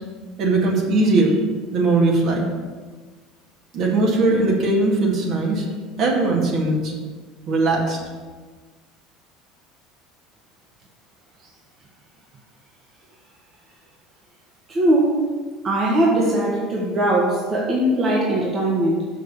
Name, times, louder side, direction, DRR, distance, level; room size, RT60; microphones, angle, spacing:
voice 1, 0.4-1.4 1.7-2.5 3.7-5.6 6.0-6.9 7.5-8.0, right 2 dB, 50° right, -2 dB, 2.2 m, -19 dB
voice 2, 14.7-15.3 15.6-19.1, right 1 dB, 35° right, -3 dB, 1.8 m, -20 dB
6.5 x 6.4 x 7.0 m, 1.4 s
hypercardioid pair, 70°, 0 cm